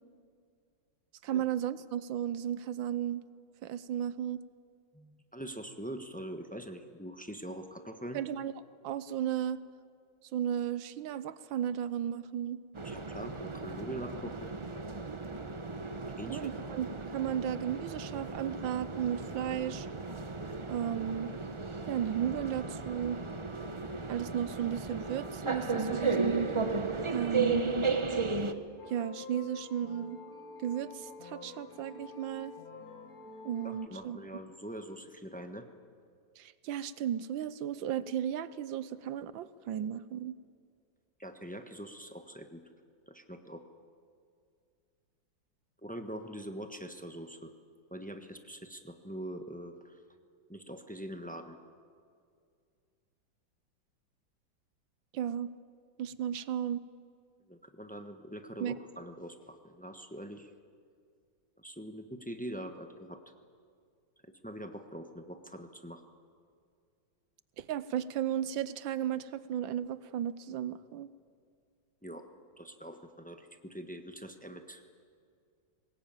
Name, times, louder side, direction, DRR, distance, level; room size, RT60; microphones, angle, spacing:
voice 1, 1.2-3.2 3.6-4.4 8.1-8.5 8.8-9.6 10.3-12.6 16.3-19.9 20.7-21.3 21.9-23.2 24.1-26.5 27.1-27.8 28.8-30.2 30.6-32.5 33.4-34.2 36.4-40.3 55.1-55.5 56.0-56.8 58.6-58.8 67.6-71.1, right 10 dB, 80° right, 15 dB, 1.5 m, -34 dB
voice 2, 4.9-8.2 12.8-14.5 16.2-16.5 33.6-35.7 41.2-42.6 43.1-43.6 45.8-47.5 47.9-50.0 50.5-51.6 57.5-60.5 61.6-63.2 64.2-66.0 72.0-72.3 72.6-74.9, right 1 dB, 5° left, 6 dB, 0.9 m, -43 dB
sound 1, 12.7-28.5, right 3 dB, 35° right, 0.5 m, -35 dB
sound 2, 28.8-33.9, left 3 dB, 50° left, 1.8 m, -48 dB
22.5 x 20.0 x 9.0 m, 2.2 s
omnidirectional pair, 2.1 m